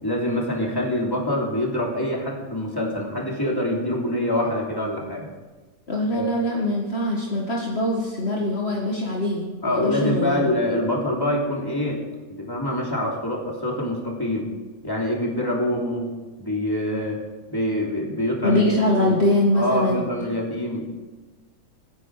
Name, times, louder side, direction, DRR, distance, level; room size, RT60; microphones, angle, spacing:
voice 1, 0.0-5.3 6.1-6.3 9.6-12.0 12.3-14.5 14.8-16.1 16.4-17.2 17.5-19.2 19.5-20.9, left 1 dB, 5° left, -2 dB, 2.9 m, -25 dB
voice 2, 5.9-10.5 18.4-20.1, left 1 dB, 30° left, -2 dB, 1.2 m, -23 dB
25.5 x 10.0 x 4.9 m, 1.2 s
omnidirectional pair, 3.7 m